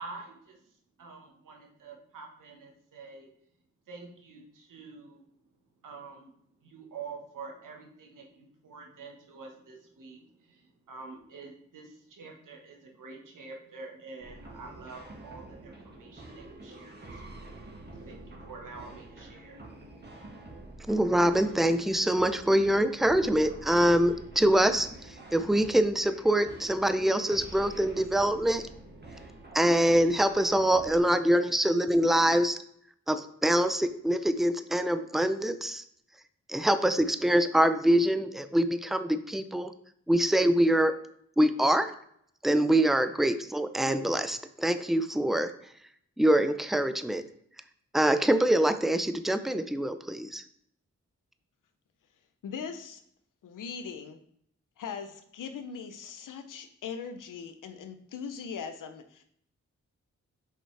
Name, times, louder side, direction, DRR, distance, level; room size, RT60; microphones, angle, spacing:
voice 1, 0.0-3.3 3.9-5.2 5.8-6.3 6.6-17.5 18.0-19.7, right 4 dB, 85° right, 1 dB, 1.3 m, -47 dB
sound 1, 14.2-31.0, right 2 dB, 35° right, 1.8 m, -47 dB
voice 2, 20.9-24.9 25.3-28.6 29.5-32.6 33.1-35.8 36.5-39.7 40.1-40.9 41.4-41.9 42.4-45.5 46.2-47.2 47.9-50.4, right 1 dB, ahead, 10 dB, 0.5 m, -24 dB
voice 3, 52.4-53.0 53.4-54.2 54.8-59.2, left 6 dB, 85° left, 9 dB, 0.7 m, -40 dB
5.9 x 5.4 x 3.3 m, 0.69 s
cardioid pair, 40°, 31 cm